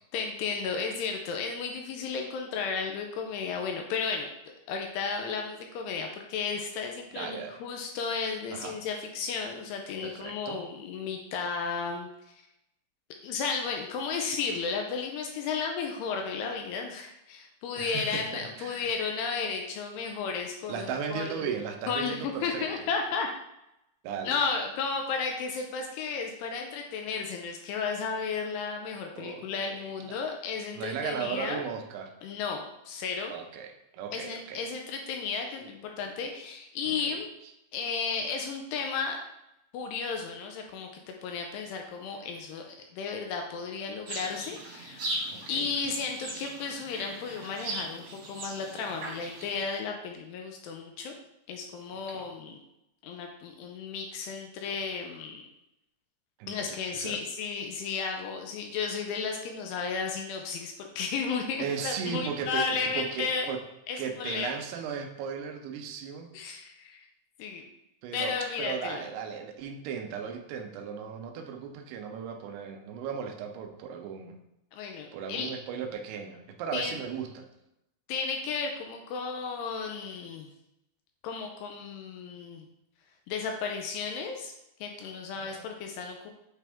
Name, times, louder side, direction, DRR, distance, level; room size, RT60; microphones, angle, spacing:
voice 1, 0.1-4.3 4.7-12.1 13.2-21.5 21.9-23.3 24.2-31.6 32.2-33.3 34.1-37.3 37.7-39.3 39.7-40.9 41.2-45.2 45.5-51.1 51.5-52.6 53.0-55.4 56.5-63.5 63.9-64.6 66.3-67.1 67.4-67.7 68.1-69.1 74.7-75.5 76.7-77.0 78.1-80.5 81.2-82.7 83.3-84.5 84.8-86.3, left 5 dB, 80° left, 2 dB, 2.5 m, -33 dB
voice 2, 7.2-7.6 8.5-8.8 10.0-10.6 17.8-18.9 20.7-22.9 24.0-24.4 29.1-29.8 30.0-30.2 30.7-32.1 33.3-34.7 36.8-36.9 45.3-45.7 51.9-52.3 56.4-56.6 56.9-57.2 61.6-63.6 64.0-66.3 68.0-74.4 75.1-77.5 85.3-85.7, right 7 dB, 80° right, 3 dB, 2.5 m, -36 dB
sound 1, 44.0-49.6, right 1 dB, 50° right, 1.7 m, -38 dB
8.3 x 3.4 x 3.5 m, 0.84 s
omnidirectional pair, 5.1 m